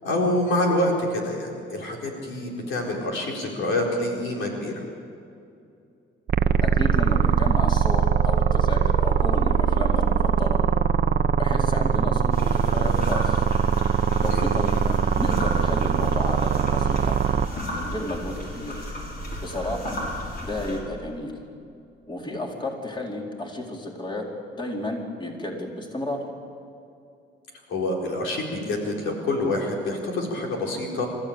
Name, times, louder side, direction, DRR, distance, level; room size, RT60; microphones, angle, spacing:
voice 1, 0.0-4.8 14.3-14.5 27.7-31.1, left 1 dB, 85° left, 0 dB, 4.4 m, -26 dB
sound 1, 6.3-17.5, right 7 dB, 50° right, 0.9 m, -21 dB
voice 2, 6.6-10.6 11.4-13.4 14.2-17.2 17.7-18.9 19.4-20.0 20.4-21.3 22.1-26.2, left 1 dB, 25° left, 0 dB, 4.2 m, -32 dB
sound 2, 12.3-20.8, left 1 dB, 50° left, 6.7 m, -33 dB
27.5 x 14.5 x 8.8 m, 2.5 s
cardioid pair, 90°, 20 cm